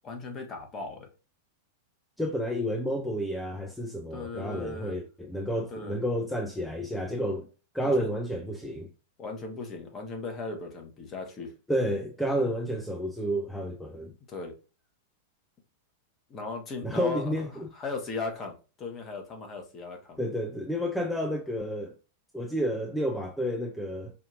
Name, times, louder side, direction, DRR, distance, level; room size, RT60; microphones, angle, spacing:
voice 1, 0.0-1.1 4.1-5.0 5.7-6.0 7.8-8.1 9.2-11.5 14.3-14.5 16.3-17.3 17.7-20.2, left 3 dB, 25° left, 1.2 m, -37 dB
voice 2, 2.2-7.5 7.7-8.9 11.7-14.1 16.8-17.7 20.2-21.9 22.3-24.1, equal, 5° left, 0.5 m, -30 dB
4.9 x 2.8 x 2.5 m
figure-of-eight pair, 95°, 0 cm